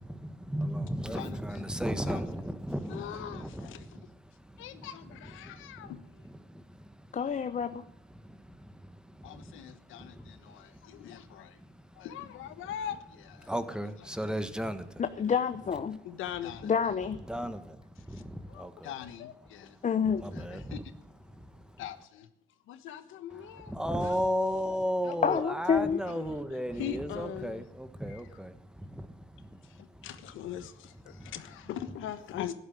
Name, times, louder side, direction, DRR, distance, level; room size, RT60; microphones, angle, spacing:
voice 1, 0.0-7.2 7.6-12.1 12.6-12.7 13.4-15.0 17.2-18.9 19.4-21.0 21.3-21.8 23.3-30.2 31.0-31.3, equal, 5° right, 1.4 m, -37 dB
voice 2, 1.1-1.6 2.1-2.2 2.9-3.9 4.6-6.2 9.2-11.6 11.9-13.5 16.0-16.7 18.1-18.2 18.5-19.8 20.3-20.8 21.8-22.3 22.7-24.2 25.0-25.4 26.1-26.3 26.8-27.6 28.1-28.2 29.6-32.5, left 10 dB, 90° left, 1.3 m, -42 dB
voice 3, 7.1-7.8 15.0-16.0 16.6-17.2 19.8-20.3 25.2-26.0, left 6 dB, 40° left, 0.8 m, -28 dB
12.5 x 11.0 x 9.3 m
cardioid pair, 90°, 20 cm